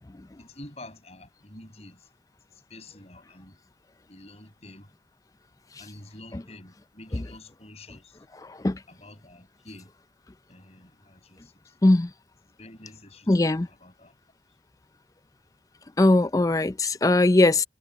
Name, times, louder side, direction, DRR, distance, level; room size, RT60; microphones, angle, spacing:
voice 1, 0.4-2.1 2.5-3.6 4.1-4.9 5.8-8.2 8.9-9.9 10.5-11.8 12.6-14.1, left 1 dB, 35° left, 7.5 m, -48 dB
voice 2, 8.4-8.8 11.8-12.1 13.3-13.7 16.0-17.6, left 2 dB, 20° left, 0.4 m, -21 dB
head